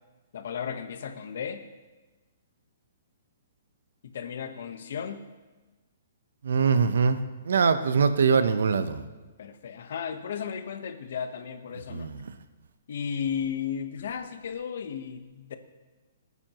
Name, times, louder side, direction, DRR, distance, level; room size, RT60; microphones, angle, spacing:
voice 1, 0.3-1.6 4.0-5.2 9.4-12.1 12.9-15.6, left 7 dB, 60° left, 8 dB, 1.1 m, -34 dB
voice 2, 6.4-7.2 7.5-9.0 11.9-12.2, right 5 dB, 80° right, 10 dB, 0.9 m, -22 dB
26.0 x 9.6 x 3.1 m, 1.2 s
hypercardioid pair, 165°, 0 cm